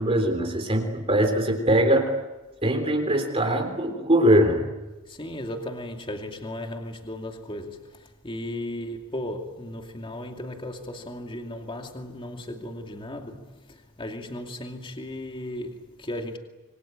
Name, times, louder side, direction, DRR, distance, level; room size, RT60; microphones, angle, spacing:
voice 1, 0.0-2.1 2.6-4.6, right 1 dB, 25° right, 3.5 m, -22 dB
voice 2, 5.1-16.4, left 1 dB, 25° left, 2.5 m, -36 dB
27.0 x 24.0 x 9.0 m
head